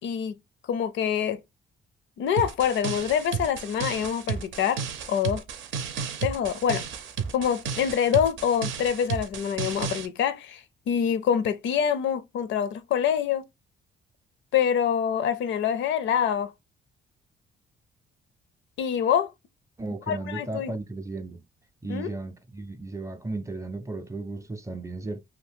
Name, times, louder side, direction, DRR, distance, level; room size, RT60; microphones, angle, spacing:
voice 1, 0.0-0.3 0.7-1.4 2.2-4.8 5.1-5.4 6.2-6.8 7.3-13.4 14.5-16.5 18.8-19.3 20.1-20.7 21.9-22.1, left 8 dB, 70° left, 0.5 m, -25 dB
sound 1, 2.4-10.1, right 6 dB, 75° right, 0.6 m, -33 dB
voice 2, 19.8-21.4 21.8-25.2, right 2 dB, 15° right, 0.5 m, -35 dB
2.7 x 2.5 x 3.4 m
cardioid pair, 90°, 20 cm